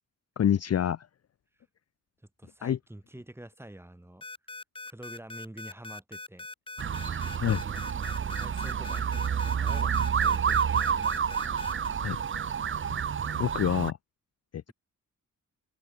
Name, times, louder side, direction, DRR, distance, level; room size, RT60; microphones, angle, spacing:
voice 1, 0.4-1.1 2.6-2.8 7.4-7.6 12.0-12.2 13.4-14.0 14.5-14.7, left 9 dB, 50° left, 0.6 m, -27 dB
voice 2, 2.4-4.3 4.9-6.5 8.1-11.6, right 1 dB, 5° right, 2.4 m, -47 dB
sound 1, 4.2-11.9, left 3 dB, 15° left, 0.9 m, -42 dB
sound 2, 6.8-13.9, right 7 dB, 35° right, 0.6 m, -29 dB
open air
wide cardioid pair, 145°, 33 cm